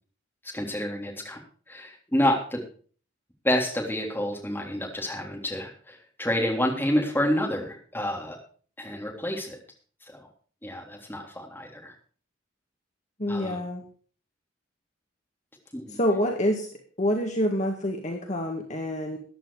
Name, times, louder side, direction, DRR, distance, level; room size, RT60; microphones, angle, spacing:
voice 1, 0.5-1.4 1.7-2.6 3.4-8.4 8.8-9.6 10.1-10.3 10.6-11.9 13.3-13.6 15.7-16.0, left 1 dB, 10° left, -1 dB, 3.5 m, -28 dB
voice 2, 13.2-13.8 15.9-16.7 17.0-19.2, equal, 40° left, 2 dB, 1.9 m, -27 dB
14.5 x 11.0 x 4.8 m, 0.43 s
head